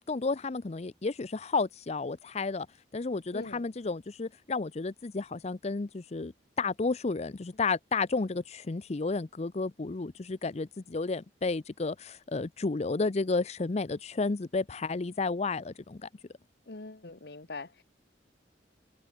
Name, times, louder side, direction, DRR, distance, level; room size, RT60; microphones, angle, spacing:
voice 1, 0.1-6.3 6.6-16.1, left 3 dB, 40° left, 0.6 m, -32 dB
voice 2, 3.3-3.6 16.7-17.8, left 3 dB, 65° left, 1.4 m, -42 dB
head